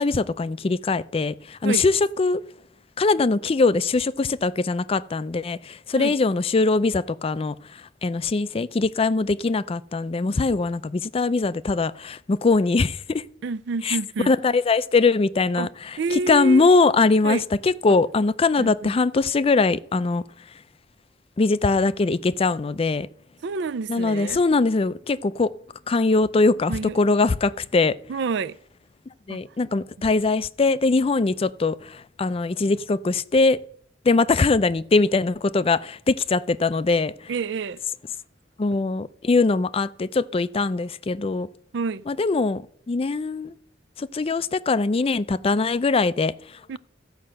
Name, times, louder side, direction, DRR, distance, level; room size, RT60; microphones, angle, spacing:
voice 1, 0.0-2.4 3.0-13.2 13.8-14.0 14.3-20.2 21.4-23.1 23.9-25.5 25.9-28.0 29.3-33.6 34.0-37.3 38.6-41.5 42.1-42.6 42.9-43.5 44.0-46.8, left 3 dB, 30° left, 0.4 m, -22 dB
voice 2, 13.4-14.3 15.6-15.7 16.0-16.7 17.2-17.4 18.6-18.9 23.4-24.4 26.7-27.0 28.1-28.6 29.3-29.4 37.3-37.8 41.7-42.1 46.7-46.8, right 4 dB, 65° right, 0.4 m, -28 dB
14.0 x 5.6 x 7.6 m
head